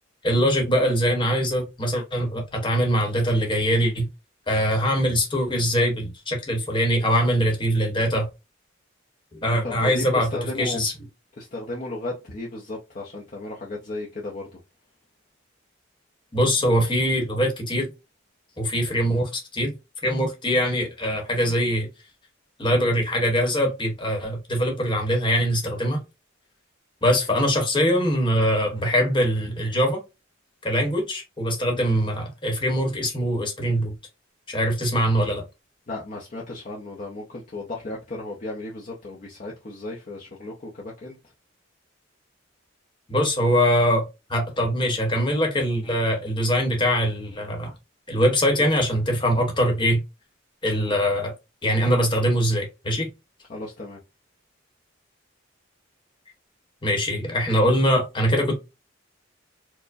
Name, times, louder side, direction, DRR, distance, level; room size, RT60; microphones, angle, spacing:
voice 1, 0.2-4.1 4.5-8.3 9.3-10.3 10.6-10.9 16.3-17.9 18.6-19.7 20.0-21.9 22.6-26.0 27.0-30.0 30.6-33.9 34.5-35.4 43.1-47.7 48.1-50.0 50.6-51.3 51.6-53.1 56.8-58.6, equal, 25° left, 1.0 m, -22 dB
voice 2, 9.5-10.8 11.4-14.6 35.9-41.2 53.5-54.0, left 2 dB, 40° left, 0.6 m, -35 dB
4.5 x 2.1 x 2.5 m
head